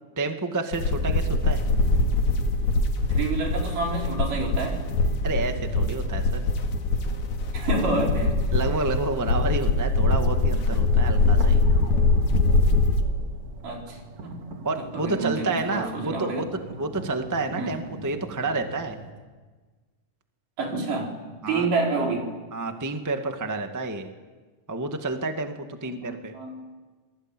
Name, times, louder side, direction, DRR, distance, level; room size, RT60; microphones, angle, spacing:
voice 1, 0.2-1.6 5.2-6.4 8.5-11.6 14.6-18.9 21.4-21.7 22.5-24.1 24.7-26.3, right 2 dB, 10° right, 5 dB, 1.1 m, -29 dB
sound 1, 0.7-13.0, left 3 dB, 70° left, 3.3 m, -23 dB
voice 2, 3.1-4.8 7.5-8.7 13.6-14.4 14.9-16.5 17.6-17.7 20.6-21.1 21.5-22.3 26.1-26.6, right 3 dB, 80° right, 0 dB, 5.7 m, -28 dB
sound 2, 10.6-19.1, right 3 dB, 60° right, 3.5 m, -42 dB
28.0 x 21.0 x 9.2 m, 1.3 s
omnidirectional pair, 3.7 m